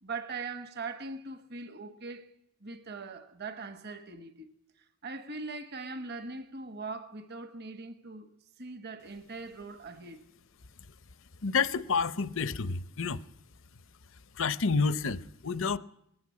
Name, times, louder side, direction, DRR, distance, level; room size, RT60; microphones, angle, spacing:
voice 1, 0.0-4.5 5.0-8.3 8.6-10.2, right 3 dB, 45° right, 1.2 m, -41 dB
voice 2, 11.4-13.2 14.4-15.8, left 5 dB, 60° left, 0.7 m, -29 dB
20.0 x 15.0 x 9.6 m
head